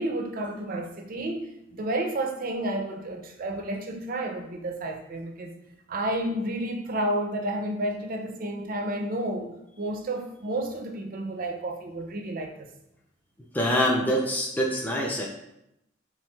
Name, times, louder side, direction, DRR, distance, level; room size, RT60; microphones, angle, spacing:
voice 1, 0.0-5.5 5.9-9.5 9.8-12.7, right 1 dB, 45° right, 3 dB, 0.5 m, -31 dB
voice 2, 13.5-15.3, equal, 10° left, -2 dB, 0.4 m, -25 dB
4.5 x 3.2 x 2.3 m, 0.83 s
head